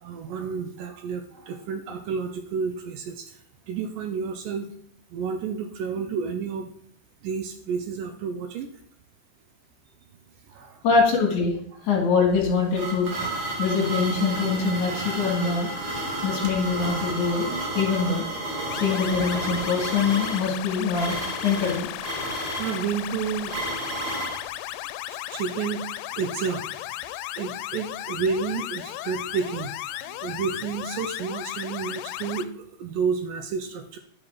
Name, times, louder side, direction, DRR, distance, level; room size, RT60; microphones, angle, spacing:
voice 1, 0.0-3.4 3.7-4.7 5.1-6.7 7.2-8.8 10.5-10.8 18.6-18.8 22.3-23.6 25.1-25.9 26.2-26.7 27.1-34.0, right 6 dB, 80° right, 6 dB, 1.9 m, -31 dB
voice 2, 10.8-11.5 11.8-13.1 13.6-15.7 16.2-17.5 17.7-18.3 18.7-21.9, left 5 dB, 55° left, 0 dB, 3.0 m, -23 dB
sound 1, 12.3-24.4, right 2 dB, 40° right, 2.4 m, -32 dB
sound 2, 18.7-32.5, left 14 dB, 85° left, 2.6 m, -35 dB
10.5 x 5.7 x 4.6 m, 0.64 s
omnidirectional pair, 4.7 m